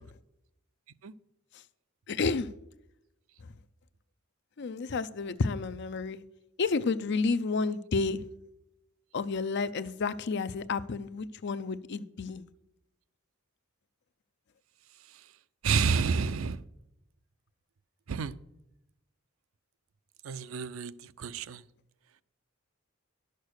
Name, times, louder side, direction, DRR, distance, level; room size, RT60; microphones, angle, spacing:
voice 1, 2.1-2.5 4.6-6.2 6.6-8.2 9.1-12.5, left 4 dB, 55° left, 0.5 m, -30 dB
voice 2, 15.6-16.6 18.1-18.3 20.2-21.6, right 5 dB, 85° right, 0.5 m, -29 dB
11.0 x 6.7 x 6.4 m
head